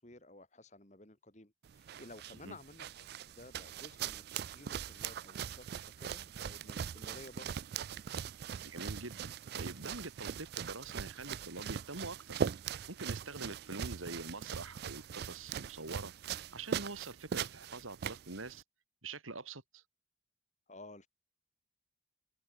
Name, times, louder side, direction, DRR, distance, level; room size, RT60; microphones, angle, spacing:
voice 1, 0.0-7.5 13.3-13.6 20.7-21.1, left 2 dB, 35° left, 2.8 m, -54 dB
sound 1, 1.6-18.6, right 8 dB, 50° right, 0.3 m, -41 dB
voice 2, 8.6-12.4 12.9-18.6 19.0-19.8, right 3 dB, 90° right, 3.4 m, -45 dB
open air
head